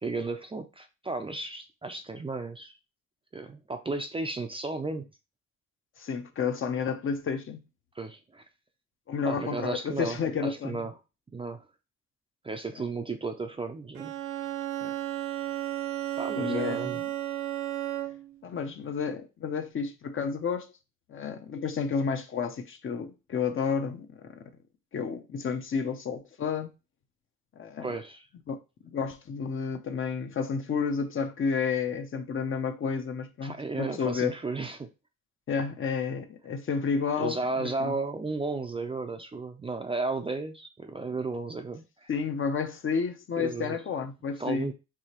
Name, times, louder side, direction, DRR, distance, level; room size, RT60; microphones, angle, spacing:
voice 1, 0.0-2.8 3.3-5.1 8.0-8.4 9.2-10.9 11.3-11.7 12.4-14.1 16.2-17.0 27.8-28.3 33.4-34.9 37.2-42.1 43.4-43.8 44.4-44.7, right 3 dB, 20° right, 0.4 m, -34 dB
voice 2, 6.0-7.6 9.1-10.8 14.8-14.9 16.3-17.1 18.4-20.7 21.1-24.4 24.9-26.7 27.6-28.0 28.5-28.6 28.8-34.3 35.5-38.0 42.1-44.7, left 6 dB, 45° left, 0.6 m, -31 dB
Bowed string instrument, 13.9-18.4, right 13 dB, 80° right, 0.6 m, -33 dB
4.8 x 2.8 x 2.9 m
cardioid pair, 90°, 30 cm